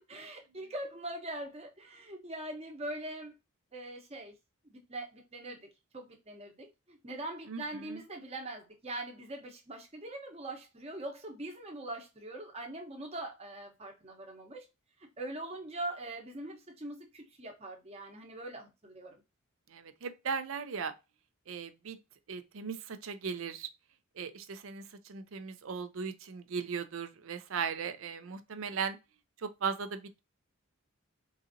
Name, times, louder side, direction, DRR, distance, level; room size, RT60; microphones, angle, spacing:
voice 1, 0.1-3.3 3.7-4.3 4.6-5.7 5.9-14.7 15.2-19.2, right 1 dB, 30° right, 0.9 m, -42 dB
voice 2, 19.7-20.9 21.5-22.0 22.3-23.7 24.2-24.8 25.1-29.0 29.4-30.2, right 6 dB, 65° right, 0.5 m, -37 dB
4.0 x 2.5 x 2.6 m
head